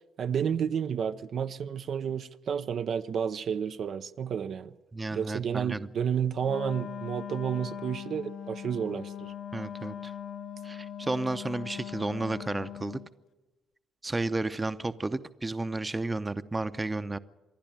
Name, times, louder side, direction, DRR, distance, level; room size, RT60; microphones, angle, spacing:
voice 1, 0.2-4.7 5.1-9.3, right 7 dB, 60° right, 0.7 m, -31 dB
voice 2, 4.9-5.9 9.5-10.1 10.6-13.0 14.0-17.2, right 2 dB, 20° right, 0.8 m, -32 dB
Wind instrument woodwind instrument, 6.5-13.1, left 9 dB, 70° left, 1.0 m, -40 dB
26.0 x 11.5 x 9.0 m
cardioid pair, 90°, 0 cm